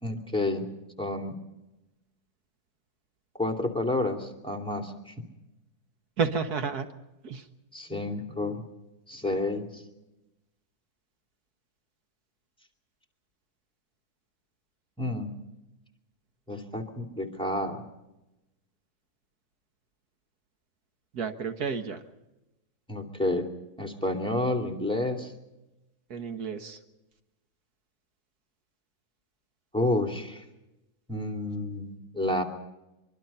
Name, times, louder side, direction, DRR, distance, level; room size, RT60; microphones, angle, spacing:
voice 1, 0.0-0.7 1.0-1.3 3.4-5.1 7.7-8.6 9.1-9.8 15.0-15.3 16.5-17.8 22.9-23.5 23.8-25.3 29.7-30.4 31.1-32.4, left 2 dB, 5° left, 3 dB, 2.6 m, -30 dB
voice 2, 6.2-6.9 7.2-7.5 21.1-22.0 26.1-26.8, right 5 dB, 75° right, 7 dB, 1.9 m, -31 dB
24.0 x 24.0 x 5.6 m, 0.97 s
omnidirectional pair, 1.7 m